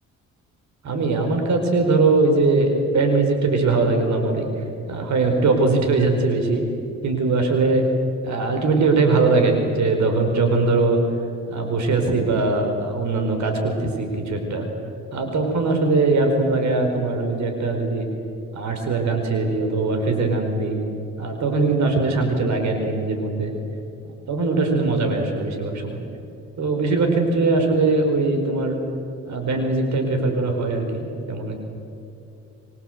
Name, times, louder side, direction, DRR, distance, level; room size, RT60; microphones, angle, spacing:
voice 1, 0.8-4.5 4.9-6.6 7.0-7.8 8.2-11.0 11.5-14.7 15.1-18.1 18.5-20.8 21.2-23.5 24.3-26.0 26.6-28.8 29.3-31.6, right 3 dB, 65° right, 4 dB, 5.1 m, -21 dB
25.0 x 24.0 x 8.1 m, 2.7 s
cardioid pair, 90°, 30 cm